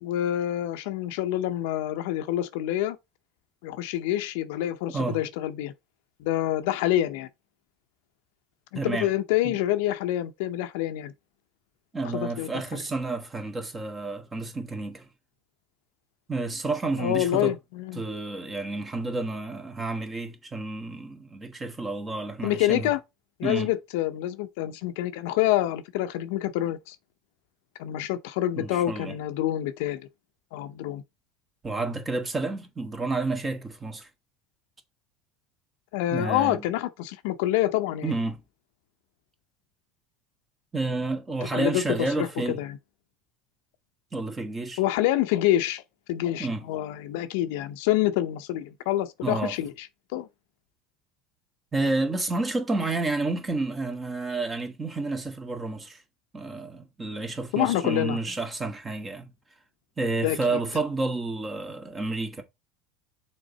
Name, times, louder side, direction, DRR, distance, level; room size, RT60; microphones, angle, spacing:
voice 1, 0.0-3.0 3.6-5.7 6.2-7.3 8.7-11.1 12.2-12.5 17.0-18.0 22.4-23.0 23.4-27.0 27.8-30.1 30.5-31.0 35.9-38.1 41.5-42.3 42.6-42.8 44.8-45.8 46.1-49.9 50.1-50.3 57.5-58.2 60.2-60.6, left 13 dB, 75° left, 0.7 m, -27 dB
voice 2, 8.7-9.1 9.4-9.6 11.9-15.1 16.3-17.5 17.9-22.9 23.4-23.7 28.6-29.2 31.6-34.1 36.1-36.7 38.0-38.4 40.7-42.6 44.1-44.8 46.4-46.7 49.2-49.6 51.7-56.0 56.3-59.3 60.0-62.4, right 3 dB, 20° right, 1.6 m, -30 dB
6.5 x 3.9 x 4.1 m
supercardioid pair, 125°, 0 cm